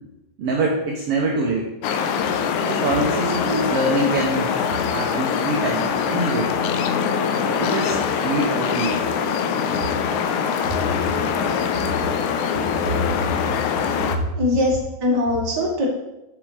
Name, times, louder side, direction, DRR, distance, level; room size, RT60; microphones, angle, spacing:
voice 1, 0.4-1.7 2.6-4.5 4.9-6.6 7.6-9.0 10.7-10.8 12.9-13.2 14.1-14.3, right 2 dB, 60° right, 0 dB, 1.7 m, -24 dB
sound 1, 1.8-14.2, left 6 dB, 80° left, 2.1 m, -23 dB
voice 2, 14.3-15.9, left 1 dB, 35° right, -2 dB, 2.4 m, -21 dB
7.3 x 6.7 x 5.0 m, 0.95 s
omnidirectional pair, 3.6 m